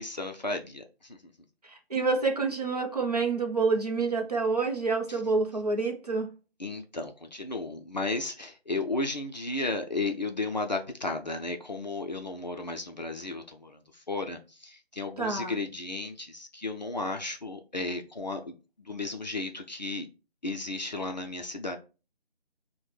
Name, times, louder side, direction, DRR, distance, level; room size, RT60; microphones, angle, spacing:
voice 1, 0.0-1.3 6.6-20.1 20.4-21.8, left 2 dB, 45° left, 0.4 m, -34 dB
voice 2, 1.6-6.3 15.2-15.5, right 4 dB, 40° right, 0.6 m, -28 dB
5.5 x 2.1 x 3.1 m
figure-of-eight pair, 155°, 31 cm